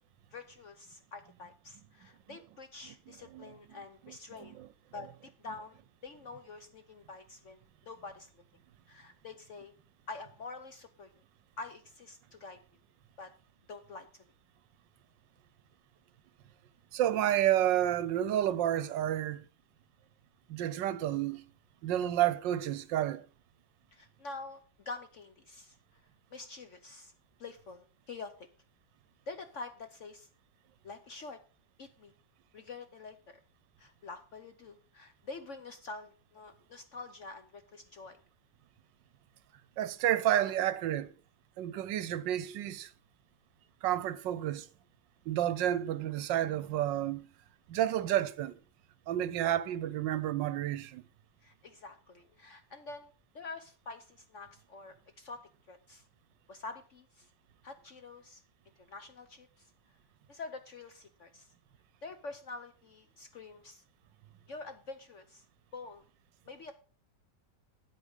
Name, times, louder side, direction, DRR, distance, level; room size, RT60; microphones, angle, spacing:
voice 1, 0.3-4.6 4.9-5.8 6.0-8.3 8.9-9.7 10.1-11.1 11.6-12.6 13.2-13.3 13.7-14.1 23.9-25.8 26.3-27.1 27.4-28.3 29.3-30.3 30.8-31.4 31.8-32.1 32.5-33.2 33.8-38.2 51.4-56.0 56.5-57.3 57.6-58.4 58.8-59.7 60.3-61.5 62.0-63.8 64.5-65.4 65.7-66.0 66.5-66.7, left 3 dB, 55° left, 0.9 m, -46 dB
voice 2, 4.1-4.7 16.9-19.5 20.5-21.4 21.8-23.2 39.8-41.1 41.6-42.9 43.8-44.7 45.3-47.3 47.7-48.6 49.1-51.0, right 12 dB, 75° right, 1.3 m, -30 dB
8.7 x 8.2 x 5.3 m
omnidirectional pair, 2.0 m